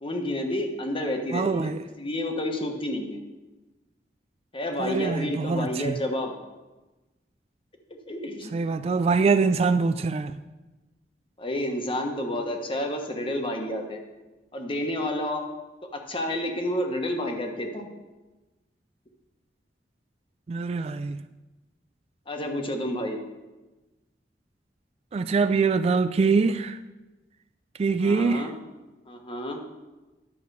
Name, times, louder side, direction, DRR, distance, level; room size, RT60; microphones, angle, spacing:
voice 1, 0.0-3.2 4.5-6.3 7.9-8.5 11.4-14.0 14.5-15.5 16.1-17.9 22.3-23.2 28.0-28.5 29.1-29.6, left 1 dB, 30° left, 1.2 m, -30 dB
voice 2, 1.3-1.8 4.8-6.0 8.5-10.4 20.5-21.2 25.1-26.8 27.8-28.5, right 4 dB, 35° right, 0.3 m, -24 dB
11.0 x 4.8 x 6.8 m
head